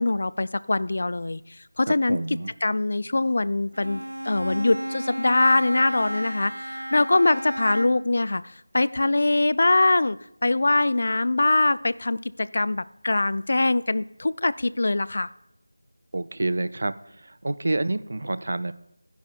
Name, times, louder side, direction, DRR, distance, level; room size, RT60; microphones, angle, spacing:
voice 1, 0.0-1.4 1.8-2.2 2.6-8.4 8.7-10.2 10.4-15.3, left 2 dB, 50° left, 18 dB, 0.3 m, -23 dB
voice 2, 1.9-2.5 16.1-16.9 17.2-18.7, right 2 dB, 50° right, 16 dB, 0.4 m, -28 dB
Bowed string instrument, 3.7-8.2, right 1 dB, 80° right, 0.7 m, -33 dB
14.0 x 10.5 x 2.3 m, 0.81 s
figure-of-eight pair, 165°, 0 cm